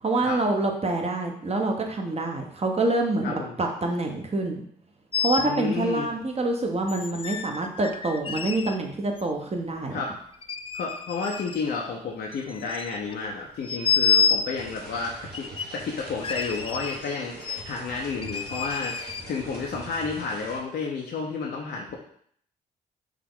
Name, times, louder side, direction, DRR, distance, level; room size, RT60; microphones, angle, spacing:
voice 1, 0.0-4.6 5.2-10.0, right 2 dB, 30° right, 2 dB, 1.1 m, -26 dB
voice 2, 3.2-3.6 5.4-6.1 9.9-10.1 10.7-15.5 15.7-18.9 19.3-21.9, left 4 dB, 55° left, -2 dB, 0.8 m, -31 dB
sound 1, 5.1-5.5 6.9-8.8 9.2-9.3 10.3-11.6 12.2-13.1 13.6-14.5 15.3-15.8 16.2-17.1 17.4-17.6 18.2-19.3, left 6 dB, 25° left, 0.4 m, -28 dB
sound 2, 14.6-20.6, right 2 dB, 50° right, 1.6 m, -43 dB
4.7 x 2.9 x 3.9 m, 0.64 s
hypercardioid pair, 45°, 20 cm